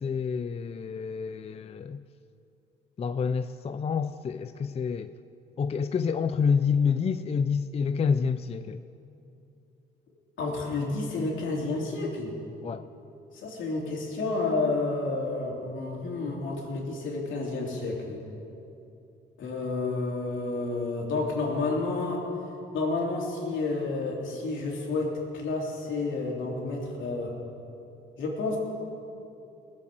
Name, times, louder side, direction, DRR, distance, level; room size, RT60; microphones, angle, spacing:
voice 1, 0.0-2.0 3.0-5.1 5.6-8.8 12.6-12.8, left 6 dB, 30° left, 11 dB, 0.4 m, -28 dB
voice 2, 10.4-12.4 13.3-18.2 19.4-22.2 22.7-27.3 28.2-28.6, left 3 dB, 75° left, -2 dB, 3.3 m, -30 dB
20.5 x 7.6 x 7.6 m, 2.8 s
cardioid pair, 90°, 20 cm